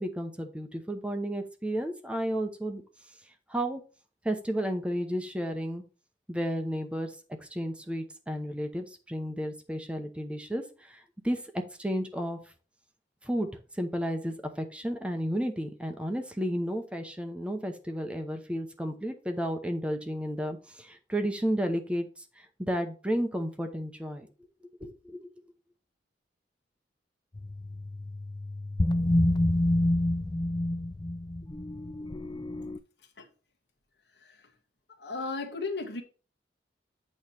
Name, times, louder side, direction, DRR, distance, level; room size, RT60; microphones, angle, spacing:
voice 1, 0.0-2.8 3.5-3.8 4.2-5.8 6.3-12.4 13.2-13.5 13.7-24.3 24.8-25.3, equal, 5° right, 0.8 m, -32 dB
sound 1, 27.4-32.8, left 1 dB, 25° left, 0.4 m, -28 dB
voice 2, 35.0-36.0, left 3 dB, 65° left, 1.4 m, -35 dB
8.6 x 3.1 x 5.7 m
head